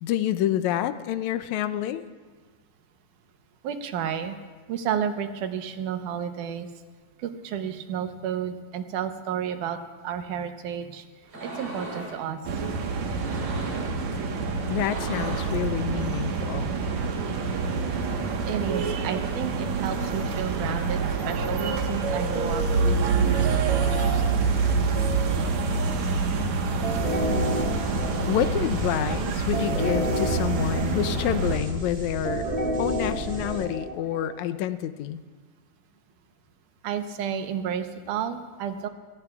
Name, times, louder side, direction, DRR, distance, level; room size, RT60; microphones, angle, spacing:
voice 1, 0.0-2.0 14.7-16.7 28.2-32.4 32.8-35.2, left 11 dB, 80° left, 12 dB, 1.8 m, -28 dB
voice 2, 3.6-4.4 4.7-6.7 7.2-9.8 10.0-11.1 11.4-12.4 18.5-24.2 27.5-27.6 36.8-38.9, right 8 dB, 90° right, 8 dB, 2.4 m, -32 dB
sound 1, 11.2-12.2 13.1-14.0 14.6-15.6, right 2 dB, 45° right, 4.0 m, -38 dB
sound 2, 12.4-31.6, right 4 dB, 70° right, 2.5 m, -26 dB
sound 3, 26.8-34.5, right 1 dB, 30° right, 1.1 m, -30 dB
28.0 x 17.5 x 2.4 m, 1.4 s
omnidirectional pair, 3.5 m